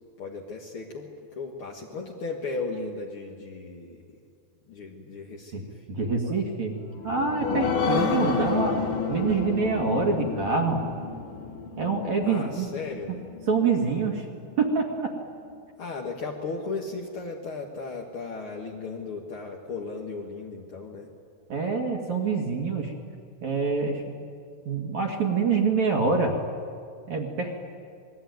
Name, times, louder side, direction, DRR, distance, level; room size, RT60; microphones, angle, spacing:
voice 1, 0.2-4.0 4.7-5.8 7.8-8.0 12.2-13.1 15.8-21.1, left 3 dB, 55° left, 0 dB, 1.5 m, -36 dB
voice 2, 5.5-6.8 7.0-10.8 11.8-12.7 13.5-14.3 14.6-15.1 21.5-22.9 23.4-24.3 24.7-26.4 27.1-27.6, right 4 dB, 50° right, 1 dB, 2.7 m, -26 dB
sound 1, 6.8-13.9 14.3-14.4 14.8-14.9, left 5 dB, 80° left, 4.9 m, -30 dB
27.5 x 21.5 x 9.5 m, 2.3 s
omnidirectional pair, 5.1 m